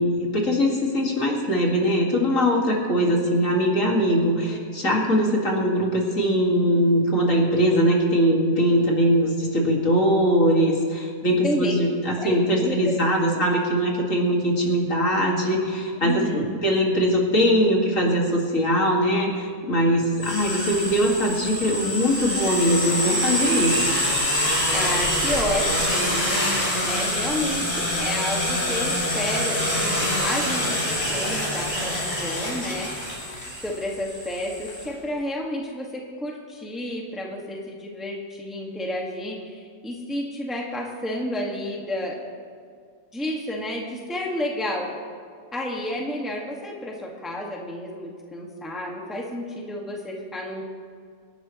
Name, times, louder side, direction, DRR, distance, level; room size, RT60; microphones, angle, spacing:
voice 1, 0.0-23.9, equal, 50° left, -1 dB, 2.4 m, -21 dB
voice 2, 11.4-11.8 12.2-12.9 13.2-13.4 16.0-16.6 24.7-26.4 26.8-32.9 33.6-42.2 43.1-44.9 45.5-50.6, left 1 dB, ahead, -2 dB, 1.6 m, -31 dB
sound 1, 20.2-34.8, equal, 20° left, 3.5 m, -25 dB
26.0 x 11.0 x 3.1 m, 2.1 s
omnidirectional pair, 1.9 m